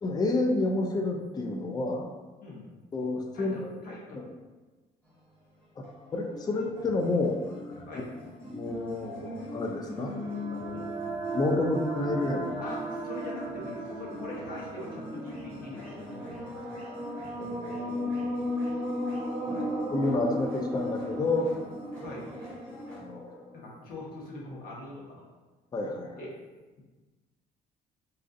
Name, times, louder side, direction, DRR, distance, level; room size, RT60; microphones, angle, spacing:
voice 1, 0.0-2.1 2.9-3.7 4.1-4.2 5.8-5.9 6.1-7.4 8.5-10.2 10.5-10.9 11.3-12.5 17.4-18.5 19.4-19.6 19.9-21.5 22.9-23.4 25.7-26.2, left 2 dB, 25° left, 2 dB, 0.4 m, -30 dB
voice 2, 2.4-2.7 3.3-4.3 7.9-8.1 10.7-10.9 12.6-16.6 19.4-19.8 22.0-22.3 23.5-25.2 26.2-26.3, left 2 dB, 60° left, -4 dB, 1.1 m, -43 dB
sound 1, 5.0-23.0, left 1 dB, 5° left, 1.4 m, -43 dB
sound 2, 9.9-23.5, right 1 dB, 15° right, 1.0 m, -36 dB
4.0 x 2.6 x 2.5 m, 1.2 s
cardioid pair, 110°, 17 cm